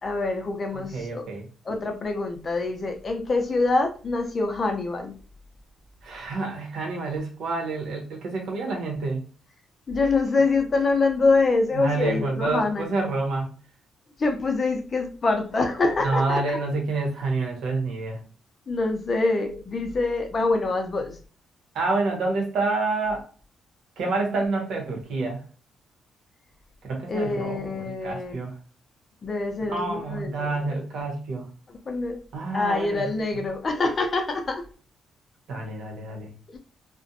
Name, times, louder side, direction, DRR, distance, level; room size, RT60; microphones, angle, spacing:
voice 1, 0.0-1.2 1.7-5.1 9.9-12.9 14.2-16.6 18.7-21.2 27.1-28.4 29.2-30.8 31.9-32.2 32.5-34.6 36.5-36.6, left 3 dB, 35° left, 0.5 m, -25 dB
voice 2, 0.7-1.5 6.0-9.2 11.7-13.5 16.0-18.2 21.7-23.3 24.0-25.4 26.8-28.6 29.7-31.5 32.3-33.1 33.3-33.4 35.5-36.3, right 3 dB, 70° right, 0.9 m, -28 dB
2.4 x 2.1 x 2.7 m
cardioid pair, 135°, 0 cm